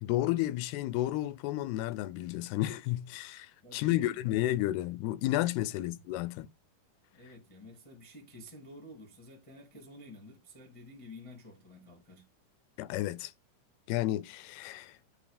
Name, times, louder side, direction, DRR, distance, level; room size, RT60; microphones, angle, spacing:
voice 1, 0.0-6.5 12.8-13.3 13.9-15.0, left 15 dB, 85° left, 2.5 m, -32 dB
voice 2, 3.6-4.5 5.7-5.8 7.1-12.2, left 1 dB, 15° left, 1.1 m, -51 dB
9.1 x 4.0 x 5.0 m
omnidirectional pair, 4.6 m